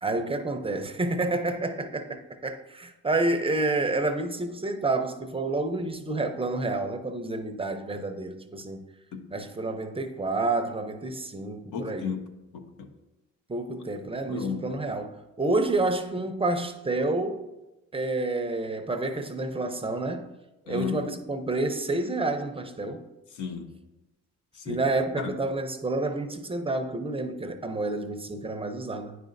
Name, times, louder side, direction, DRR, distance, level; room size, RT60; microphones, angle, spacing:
voice 1, 0.0-8.8 9.3-12.1 13.5-17.4 17.9-20.4 20.7-23.0 24.7-29.2, right 2 dB, 20° right, 0.5 m, -29 dB
voice 2, 11.7-12.9 14.3-14.8 20.7-21.1 23.3-23.8 24.5-24.8 25.2-25.4, left 6 dB, 85° left, 0.8 m, -34 dB
9.4 x 5.0 x 2.6 m
cardioid pair, 90°, 30 cm